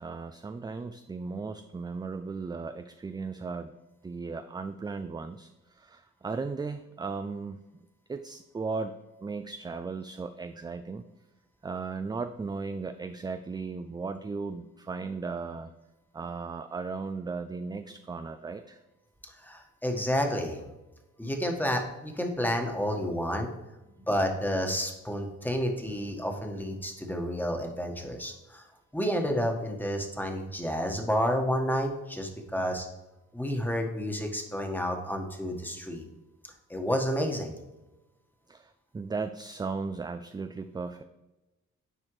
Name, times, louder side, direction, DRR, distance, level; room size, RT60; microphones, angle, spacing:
voice 1, 0.0-3.7 4.0-7.6 8.1-9.0 9.2-11.0 11.6-15.7 16.1-18.8 32.6-32.7 38.5-41.0, right 4 dB, 15° right, 9 dB, 0.3 m, -36 dB
voice 2, 19.2-20.6 21.2-23.5 24.1-28.6 28.9-32.9 33.3-36.0 36.7-37.5, equal, 5° left, 3 dB, 1.4 m, -30 dB
9.9 x 4.3 x 3.1 m, 1.0 s
supercardioid pair, 50°, 30 cm